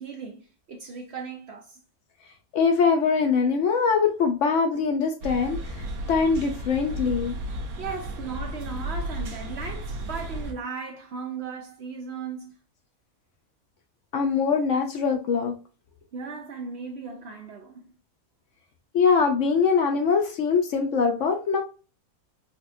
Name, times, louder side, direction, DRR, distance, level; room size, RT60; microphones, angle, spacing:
voice 1, 0.0-1.8 7.5-12.5 16.1-17.9, right 5 dB, 60° right, 0.7 m, -37 dB
voice 2, 2.5-5.6 6.1-7.3 14.1-15.6 18.9-21.6, left 5 dB, 65° left, 0.8 m, -22 dB
sound 1, 5.2-10.5, right 1 dB, 85° right, 1.3 m, -34 dB
4.2 x 2.3 x 2.5 m
omnidirectional pair, 1.5 m